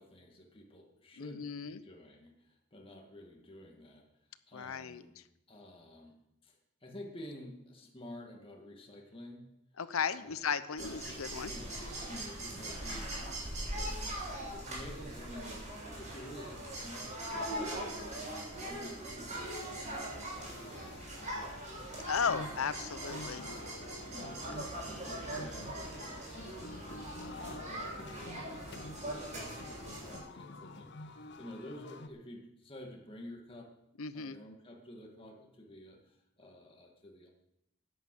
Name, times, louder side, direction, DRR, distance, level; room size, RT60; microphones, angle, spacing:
voice 1, 0.0-4.0 4.5-5.1 5.5-6.2 6.4-9.4 10.2-10.5 10.8-11.0 11.4-13.3 13.7-21.0 21.3-22.0 24.0-33.7 34.1-37.3, left 1 dB, 25° left, 0 dB, 2.1 m, -51 dB
voice 2, 1.2-1.8 4.5-5.0 9.8-11.5 22.1-23.5 34.0-34.4, left 6 dB, 90° left, 14 dB, 0.7 m, -35 dB
sound 1, 10.8-30.2, right 1 dB, 35° right, 6.5 m, -41 dB
sound 2, 19.4-32.1, left 2 dB, 55° left, 0.8 m, -49 dB
11.0 x 9.3 x 7.8 m, 0.83 s
head